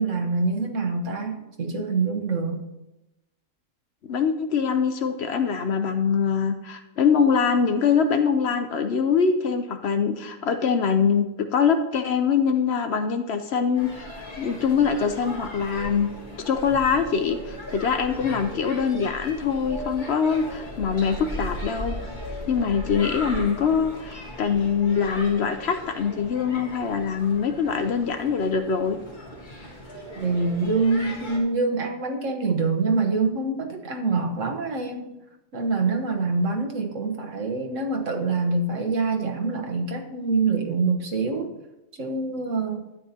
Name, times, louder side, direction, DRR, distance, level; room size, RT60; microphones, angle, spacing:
voice 1, 0.0-2.7 30.2-35.2 35.5-41.5 42.0-42.8, right 3 dB, 70° right, 3 dB, 1.5 m, -25 dB
voice 2, 4.0-16.1 16.5-22.0 22.5-29.0, left 6 dB, 60° left, 7 dB, 0.8 m, -23 dB
sound 1, 13.8-31.4, equal, 35° left, 2.0 m, -37 dB
12.5 x 9.2 x 2.8 m, 0.94 s
omnidirectional pair, 1.4 m